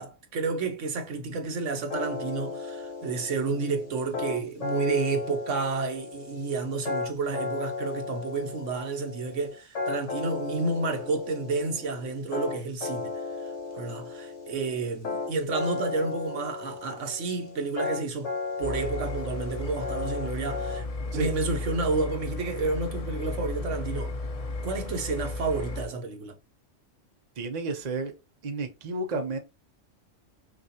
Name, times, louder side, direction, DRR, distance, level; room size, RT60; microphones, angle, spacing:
voice 1, 0.0-13.2 13.7-18.3 18.6-20.8 21.1-24.2 24.6-26.3, right 3 dB, 75° right, 1.2 m, -30 dB
sound 1, 1.9-20.8, left 4 dB, 70° left, 1.5 m, -35 dB
sound 2, 18.6-25.9, left 2 dB, 45° left, 0.5 m, -34 dB
voice 2, 27.4-28.1 28.4-29.4, right 3 dB, 40° right, 0.8 m, -31 dB
6.2 x 2.5 x 2.8 m
omnidirectional pair, 1.3 m